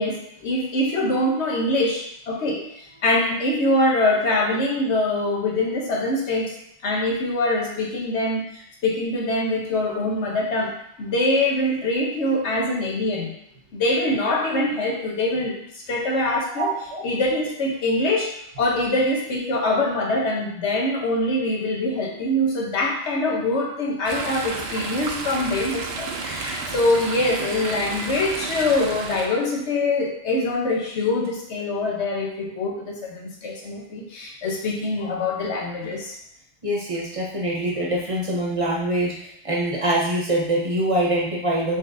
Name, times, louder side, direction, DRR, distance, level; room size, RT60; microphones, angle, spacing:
voice 1, 0.0-2.6 3.0-6.5 6.8-8.4 8.8-10.7 11.0-13.3 13.7-15.5 15.9-16.7 17.0-18.3 18.6-36.1, left 2 dB, 90° left, -2 dB, 1.2 m, -24 dB
voice 2, 16.6-17.0 26.3-26.4 36.6-41.8, right 1 dB, 35° right, -4 dB, 0.8 m, -24 dB
Chatter / Stream, 24.0-29.3, right 4 dB, 75° right, 0.8 m, -32 dB
3.9 x 3.7 x 2.5 m, 0.72 s
omnidirectional pair, 1.1 m